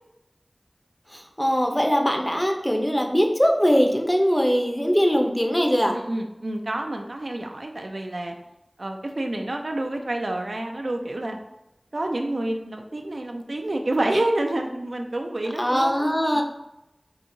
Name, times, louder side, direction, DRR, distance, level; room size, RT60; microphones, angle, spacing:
voice 1, 1.1-6.0 15.6-16.4, equal, 10° left, 3 dB, 0.5 m, -21 dB
voice 2, 5.9-8.4 8.8-11.4 11.9-16.1 16.3-16.4, right 1 dB, 85° right, 3 dB, 0.4 m, -28 dB
4.9 x 2.8 x 2.6 m, 0.92 s
wide cardioid pair, 50°, 0 cm